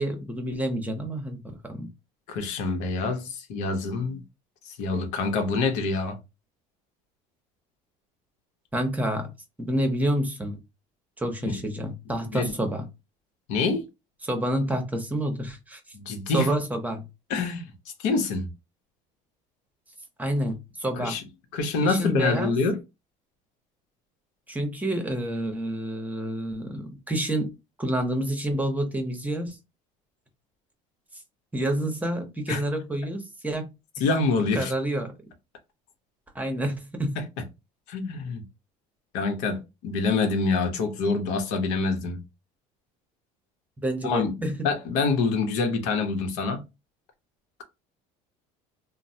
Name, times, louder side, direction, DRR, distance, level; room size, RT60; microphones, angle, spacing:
voice 1, 0.0-1.9 8.7-9.3 9.6-10.6 11.2-12.9 14.2-15.8 16.3-17.0 20.2-21.2 21.8-22.5 24.5-27.5 27.8-29.6 31.5-33.7 34.5-35.1 36.3-37.2 43.8-44.7, right 1 dB, 10° right, 0.8 m, -28 dB
voice 2, 2.3-4.2 4.6-6.2 11.4-11.5 12.3-12.5 13.5-13.9 15.9-16.5 17.3-17.6 18.0-18.5 20.9-21.2 21.5-22.8 32.5-32.6 34.0-34.7 37.9-38.4 39.1-42.2 44.0-44.3 44.6-46.6, left 4 dB, 80° left, 0.9 m, -26 dB
3.0 x 2.1 x 2.7 m
supercardioid pair, 105°, 17 cm